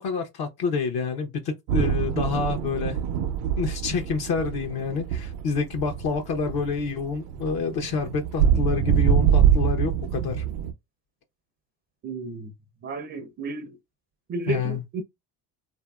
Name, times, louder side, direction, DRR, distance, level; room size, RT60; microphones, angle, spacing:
voice 1, 0.0-3.0 3.6-10.4 14.5-14.8, left 5 dB, 55° left, 0.7 m, -28 dB
sound 1, 1.7-10.7, right 9 dB, 70° right, 0.6 m, -24 dB
voice 2, 12.0-12.5 12.8-13.8 14.3-15.0, right 4 dB, 30° right, 0.5 m, -32 dB
2.7 x 2.6 x 2.2 m
supercardioid pair, 85°, 44 cm